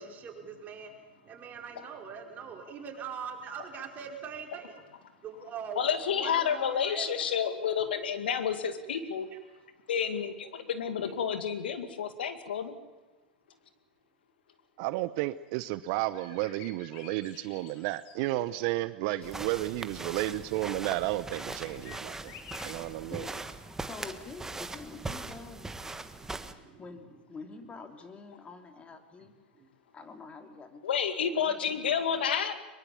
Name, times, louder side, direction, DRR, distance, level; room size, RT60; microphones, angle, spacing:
voice 1, 0.0-4.8 5.2-5.8 6.1-7.1 9.3-9.4 26.1-26.9 29.2-29.3 29.5-29.7, right 6 dB, 30° right, 2 dB, 4.9 m, -42 dB
voice 2, 5.8-9.3 9.9-12.8 30.8-32.6, left 7 dB, 75° left, 9 dB, 2.3 m, -30 dB
voice 3, 14.8-22.3 22.6-23.3, right 17 dB, 55° right, 15 dB, 0.8 m, -32 dB
sound 1, 15.6-15.7 16.1-18.8 20.0-20.5 21.3-22.7, left 8 dB, 50° left, 3.9 m, -51 dB
sound 2, 19.2-26.5, right 2 dB, 10° right, 1.6 m, -40 dB
voice 4, 22.7-25.9 26.3-29.3 29.9-31.0 31.3-31.8, left 4 dB, 20° left, 6 dB, 3.1 m, -48 dB
23.5 x 22.5 x 7.3 m, 1.2 s
hypercardioid pair, 100°, 5 cm